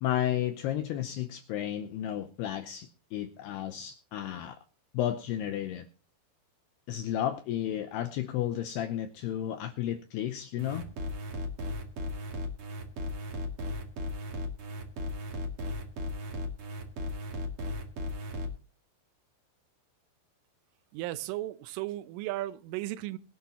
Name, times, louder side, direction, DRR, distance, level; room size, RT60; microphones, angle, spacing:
voice 1, 0.0-4.6 4.9-5.9 6.9-10.8, left 11 dB, 80° left, 2.3 m, -32 dB
sound 1, 10.6-18.5, left 1 dB, 50° right, 1.7 m, -36 dB
voice 2, 20.9-23.2, right 16 dB, 85° right, 3.3 m, -35 dB
23.0 x 10.0 x 2.9 m
omnidirectional pair, 5.7 m